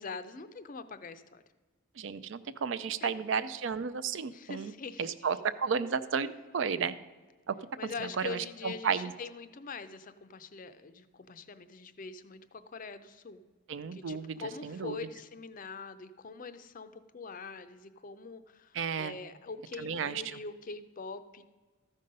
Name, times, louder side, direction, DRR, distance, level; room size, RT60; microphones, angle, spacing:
voice 1, 0.0-1.4 3.0-3.1 4.3-5.1 7.8-13.4 13.9-21.4, left 4 dB, 40° left, 12 dB, 0.5 m, -43 dB
voice 2, 2.0-4.7 5.0-7.0 7.5-7.6 8.0-9.1 13.7-15.0 18.7-19.2 19.8-20.4, right 6 dB, 60° right, 13 dB, 0.4 m, -33 dB
13.5 x 5.4 x 5.3 m, 1.4 s
head